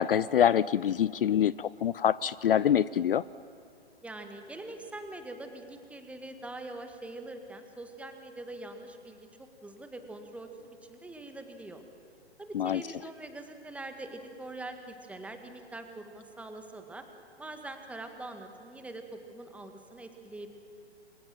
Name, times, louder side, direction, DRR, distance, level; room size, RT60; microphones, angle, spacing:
voice 1, 0.0-3.2 12.5-12.8, left 9 dB, 55° left, 19 dB, 0.5 m, -25 dB
voice 2, 4.0-11.8 12.4-17.0 17.4-20.5, right 2 dB, 5° right, 6 dB, 1.8 m, -43 dB
29.0 x 24.0 x 7.4 m, 2.4 s
figure-of-eight pair, 125°, 33 cm